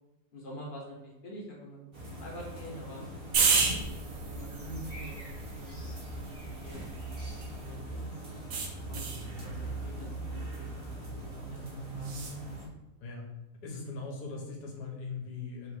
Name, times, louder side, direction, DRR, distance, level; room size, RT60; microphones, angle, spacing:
voice 1, 0.3-1.8 2.2-3.0 3.7-6.9 7.3-8.1 8.6-12.3, equal, 40° left, -2 dB, 1.0 m, -47 dB
sound 1, 1.9-12.7, right 2 dB, 35° right, 1.3 m, -41 dB
sound 2, 3.3-7.7 8.5-9.3 12.0-12.4, right 5 dB, 65° right, 1.0 m, -32 dB
voice 2, 13.6-15.8, left 4 dB, 75° left, 0 dB, 1.5 m, -40 dB
3.4 x 3.0 x 4.7 m, 0.99 s
omnidirectional pair, 1.8 m